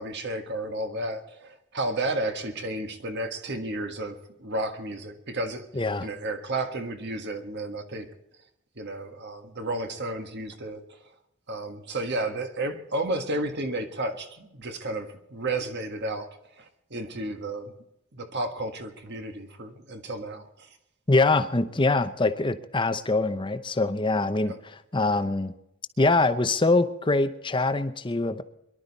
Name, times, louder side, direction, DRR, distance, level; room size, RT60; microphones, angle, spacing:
voice 1, 0.0-5.7 6.0-8.1 8.8-10.8 11.5-16.3 16.6-17.7 18.1-20.7 24.4-24.6, right 2 dB, 50° right, 6 dB, 1.6 m, -32 dB
voice 2, 5.7-6.1 21.1-25.5 26.0-28.4, left 2 dB, 20° left, 11 dB, 0.8 m, -24 dB
23.0 x 12.0 x 4.1 m, 0.84 s
head